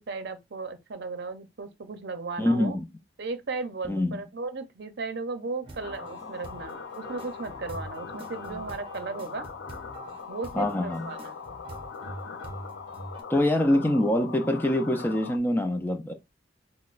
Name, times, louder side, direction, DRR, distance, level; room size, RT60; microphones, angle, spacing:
voice 1, 0.0-2.8 3.2-9.5 10.3-11.4, right 4 dB, 65° right, 0.6 m, -36 dB
voice 2, 2.4-2.9 3.9-4.2 10.5-11.1 13.3-16.1, left 1 dB, 10° left, 0.4 m, -24 dB
sound 1, 5.6-13.2, right 1 dB, 30° right, 0.7 m, -44 dB
sound 2, 5.8-15.4, left 6 dB, 90° left, 0.5 m, -41 dB
5.8 x 2.1 x 2.4 m
head